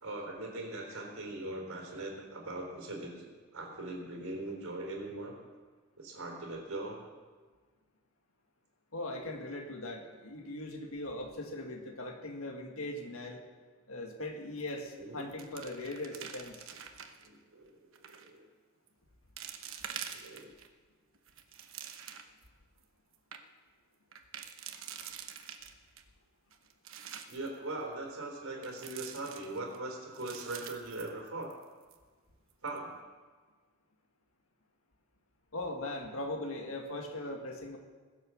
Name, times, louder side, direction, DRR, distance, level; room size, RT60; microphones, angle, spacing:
voice 1, 0.0-3.3 3.5-5.4 6.0-7.0 14.9-15.2 17.2-18.5 20.1-20.5 27.3-31.5 32.6-32.9, right 2 dB, 85° right, 1 dB, 3.6 m, -41 dB
voice 2, 8.9-13.4 13.9-16.7 35.5-37.8, left 1 dB, 85° left, 2 dB, 1.9 m, -40 dB
sound 1, 14.6-14.9 15.2-17.3 17.9-18.3 18.9-19.0 19.4-20.7 21.1-22.4 22.8-22.9 23.1-23.4 24.1-26.0 26.5-27.5 28.6-29.8 30.1-31.6 31.9-32.0 32.5-32.8, right 8 dB, 70° right, 1.1 m, -46 dB
21.5 x 7.6 x 6.3 m, 1.4 s
head